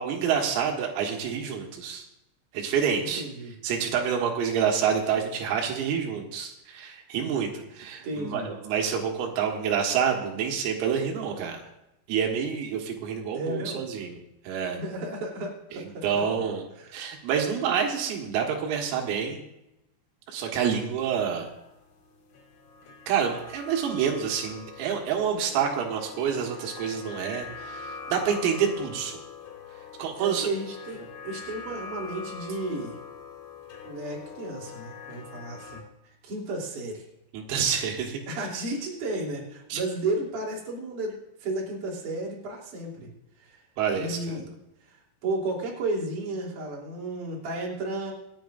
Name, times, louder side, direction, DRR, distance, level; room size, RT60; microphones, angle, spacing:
voice 1, 0.0-2.0 2.5-3.2 3.6-11.7 12.1-14.2 14.4-14.8 15.7-16.6 16.9-19.4 20.3-21.5 23.1-29.2 30.0-30.5 37.3-38.2 39.7-39.8 43.8-44.4, right 7 dB, 85° right, 1 dB, 4.3 m, -28 dB
voice 2, 3.0-3.5 7.1-7.3 8.0-8.5 13.3-13.8 14.8-16.3 16.8-17.0 30.1-33.0 33.8-37.0 38.3-41.1 41.4-43.1 43.4-43.6 43.9-44.5 44.8-48.1, right 2 dB, 45° right, -5 dB, 4.0 m, -33 dB
sound 1, 21.4-35.8, left 5 dB, 70° left, 4.9 m, -43 dB
26.5 x 9.6 x 2.6 m, 0.90 s
omnidirectional pair, 5.9 m